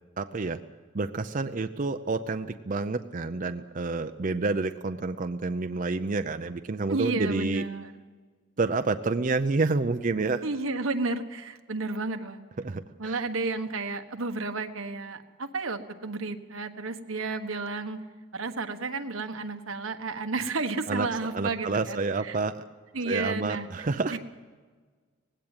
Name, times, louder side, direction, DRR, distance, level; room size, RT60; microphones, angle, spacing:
voice 1, 0.2-0.6 0.9-7.6 8.6-10.4 12.6-13.2 20.9-21.1 21.3-22.6 23.1-24.2, right 3 dB, 40° right, 9 dB, 0.6 m, -29 dB
voice 2, 6.9-7.9 10.4-12.5 13.0-18.0 18.3-22.4 22.9-23.7 24.1-24.2, right 3 dB, 85° right, 7 dB, 1.4 m, -32 dB
19.5 x 16.5 x 9.0 m, 1.5 s
head